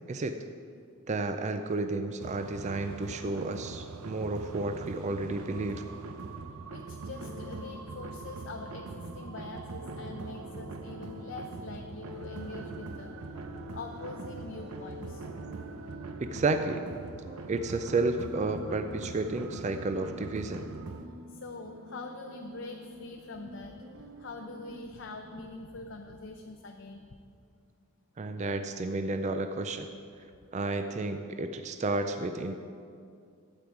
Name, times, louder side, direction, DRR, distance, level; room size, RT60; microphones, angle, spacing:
voice 1, 1.1-5.8 16.2-16.8 17.5-20.6 28.2-29.9 30.5-32.6, right 3 dB, 35° right, 7 dB, 0.4 m, -31 dB
sound 1, 2.2-21.1, right 3 dB, 90° right, 0.6 m, -43 dB
voice 2, 6.7-13.1 13.7-15.2 21.3-27.1, left 3 dB, 60° left, 3 dB, 0.6 m, -44 dB
sound 2, 7.0-25.5, equal, 70° right, 1.4 m, -47 dB
12.5 x 8.6 x 4.7 m, 2.4 s
head